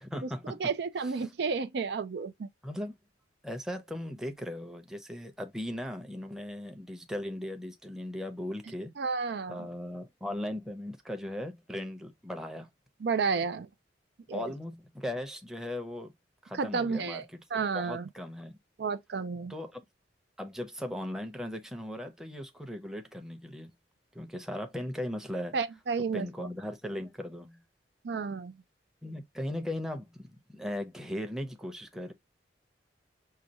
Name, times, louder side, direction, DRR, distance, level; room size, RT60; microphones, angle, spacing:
voice 1, 0.0-0.7 1.0-1.3 2.6-2.9 3.4-8.9 9.5-12.7 13.3-13.5 14.3-16.1 16.4-17.4 17.7-18.6 19.5-19.8 20.4-23.7 24.1-25.6 26.1-27.6 29.0-32.1, left 1 dB, 5° right, 0.7 m, -38 dB
voice 2, 0.6-2.5 9.0-9.7 13.0-13.7 14.3-14.5 16.5-17.3 17.5-18.1 18.8-19.5 25.5-26.3 28.0-28.5, right 5 dB, 60° right, 0.4 m, -31 dB
6.5 x 2.3 x 2.9 m
head